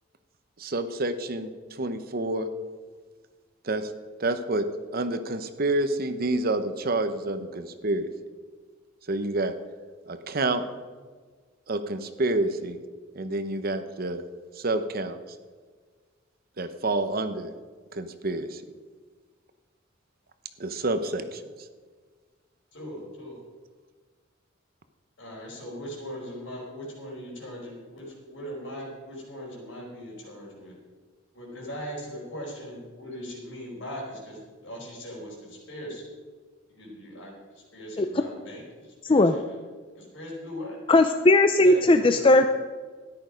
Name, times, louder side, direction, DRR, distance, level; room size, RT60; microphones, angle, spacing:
voice 1, 0.6-2.5 3.6-3.9 4.2-4.6 4.9-8.1 9.1-9.6 10.1-10.6 11.7-12.8 13.1-14.2 14.5-15.2 16.6-17.5 17.9-18.6 20.6-21.7, right 2 dB, 50° right, 10 dB, 0.8 m, -28 dB
voice 2, 22.7-23.4 25.2-30.7 31.3-36.0 36.7-37.3 37.7-39.4 40.0-40.8 41.6-42.3, equal, 70° left, -3 dB, 4.8 m, -39 dB
voice 3, 40.9-42.5, left 2 dB, 25° left, 8 dB, 0.4 m, -18 dB
13.5 x 10.5 x 5.1 m, 1.5 s
head